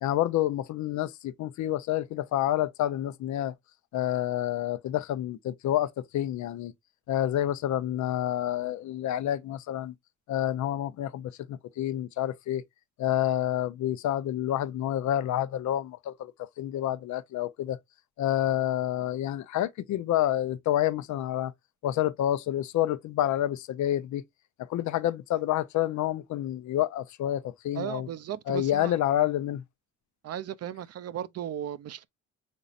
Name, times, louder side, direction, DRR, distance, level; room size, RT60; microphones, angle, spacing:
voice 1, 0.0-3.5 3.9-6.7 7.1-9.9 10.3-12.6 13.0-17.8 18.2-21.5 21.8-24.2 24.6-28.1 28.5-29.6, left 12 dB, 70° left, 0.6 m, -28 dB
voice 2, 27.8-28.9 30.2-32.1, right 10 dB, 55° right, 0.6 m, -36 dB
5.4 x 4.0 x 2.4 m
cardioid pair, 90°, 30 cm